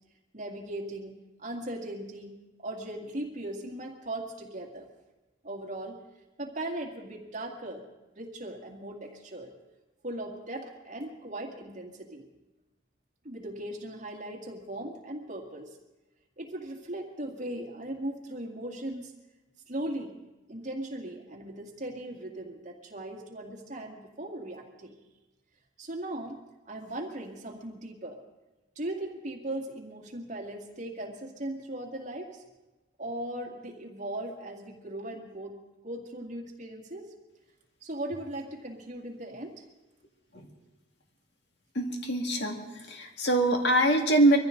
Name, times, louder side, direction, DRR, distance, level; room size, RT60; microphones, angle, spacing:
voice 1, 0.3-2.3 2.6-4.9 5.4-6.0 6.4-7.8 8.2-9.5 10.0-12.3 13.2-15.8 16.4-19.1 19.7-20.2 20.5-24.9 25.8-26.4 26.7-28.2 28.8-32.4 33.0-37.1 37.8-39.6, right 1 dB, 40° right, 1 dB, 2.1 m, -38 dB
voice 2, 41.7-44.4, right 1 dB, 60° left, 3 dB, 2.1 m, -24 dB
23.0 x 14.5 x 3.9 m, 1.1 s
head